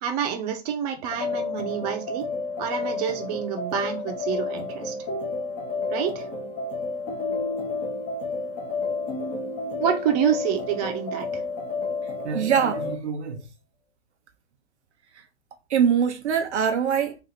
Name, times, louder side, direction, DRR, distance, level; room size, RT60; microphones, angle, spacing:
voice 1, 0.0-2.3 2.6-5.0 5.9-6.3 9.8-11.4, right 8 dB, 35° right, 0.8 m, -27 dB
sound 1, 1.1-13.0, left 3 dB, 25° left, 1.0 m, -31 dB
voice 2, 12.2-13.5 15.7-17.2, right 7 dB, 85° right, 0.8 m, -23 dB
3.3 x 2.6 x 3.9 m
hypercardioid pair, 140°, 33 cm